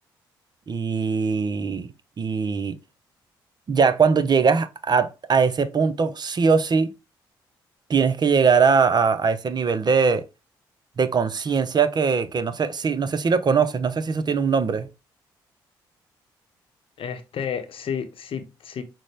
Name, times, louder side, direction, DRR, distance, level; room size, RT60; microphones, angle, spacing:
voice 1, 0.7-1.9 2.2-2.8 3.7-6.9 7.9-10.2 11.0-14.9, right 5 dB, 40° right, 0.6 m, -21 dB
voice 2, 17.0-18.8, left 7 dB, 55° left, 0.8 m, -31 dB
6.1 x 2.1 x 3.3 m
hypercardioid pair, 45°, 11 cm